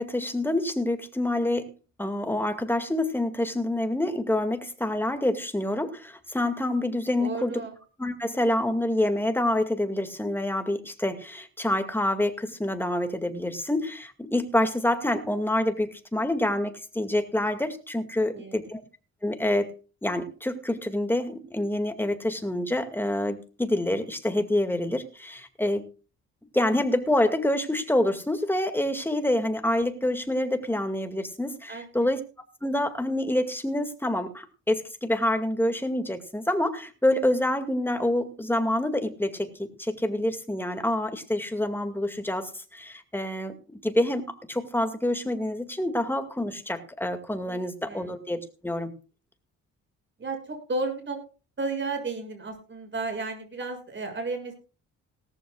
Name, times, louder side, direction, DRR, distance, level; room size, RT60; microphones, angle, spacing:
voice 1, 0.0-1.7 2.0-7.6 8.0-18.8 19.2-19.7 20.0-25.9 26.5-32.2 32.6-43.5 43.8-48.9, left 1 dB, 5° left, 6 dB, 2.2 m, -27 dB
voice 2, 7.2-7.7 18.3-18.6 31.7-32.1 47.5-48.1 50.2-51.2 51.6-54.5, right 3 dB, 40° right, 4 dB, 7.2 m, -33 dB
18.5 x 14.0 x 2.4 m, 0.36 s
cardioid pair, 90°, 30 cm